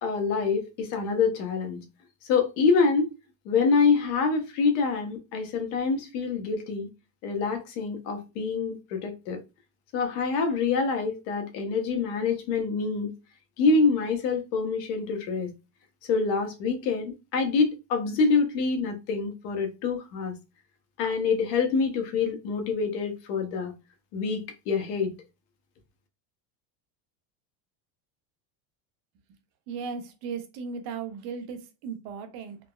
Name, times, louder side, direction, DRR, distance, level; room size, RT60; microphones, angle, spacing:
voice 1, 0.0-1.8 2.2-3.1 3.4-6.9 7.2-9.4 9.9-13.1 13.6-15.5 16.1-20.3 21.0-23.7 24.1-25.1, left 4 dB, 70° left, 0.9 m, -26 dB
voice 2, 29.7-32.6, right 5 dB, 65° right, 0.8 m, -36 dB
3.4 x 2.0 x 2.2 m
supercardioid pair, 140°, 50 cm